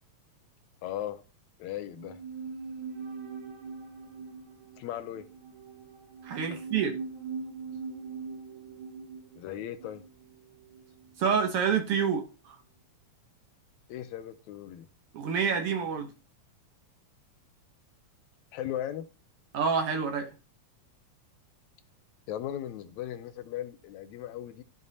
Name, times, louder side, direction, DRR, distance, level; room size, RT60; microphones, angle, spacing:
voice 1, 0.8-1.2 1.6-2.2 4.8-5.3 6.5-6.6 9.4-10.1 13.9-14.9 18.5-19.1 22.3-24.6, left 11 dB, 80° left, 1.9 m, -37 dB
sound 1, 1.9-11.3 11.5-11.6, right 5 dB, 85° right, 1.2 m, -42 dB
voice 2, 6.2-6.9 11.2-12.6 15.1-16.1 19.5-20.3, right 6 dB, 65° right, 1.5 m, -28 dB
13.5 x 5.3 x 2.7 m
omnidirectional pair, 3.4 m